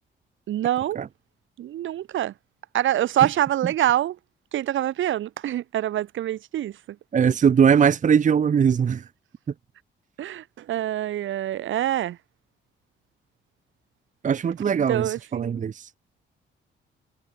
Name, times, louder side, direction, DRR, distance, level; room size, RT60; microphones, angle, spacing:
voice 1, 0.5-1.1 1.6-2.3 2.7-4.2 4.5-6.8 10.2-12.2 14.7-15.6, right 12 dB, 75° right, 4.6 m, -25 dB
voice 2, 7.1-9.0 14.2-15.9, right 7 dB, 40° right, 0.9 m, -20 dB
cardioid pair, 90°, 20 cm